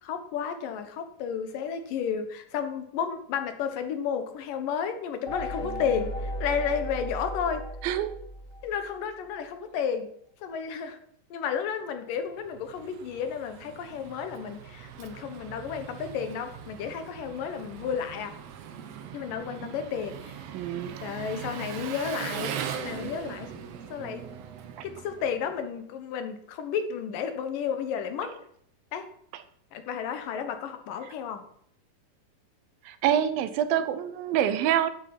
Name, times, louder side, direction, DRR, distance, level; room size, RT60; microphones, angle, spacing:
voice 1, 0.0-7.7 8.6-10.1 10.4-11.0 11.3-18.4 19.1-20.4 21.0-24.3 24.8-28.3 28.9-29.1 29.7-31.4, left 7 dB, 75° left, 8 dB, 2.8 m, -32 dB
sound 1, 5.3-9.0, equal, 35° left, 0.9 m, -36 dB
voice 2, 7.8-8.1 20.5-21.0 24.8-24.9 29.3-29.4 32.8-34.9, right 10 dB, 85° right, 12 dB, 2.6 m, -26 dB
Engine, 12.2-25.7, right 8 dB, 65° right, 1.7 m, -40 dB
11.5 x 8.3 x 6.0 m, 0.67 s
omnidirectional pair, 4.0 m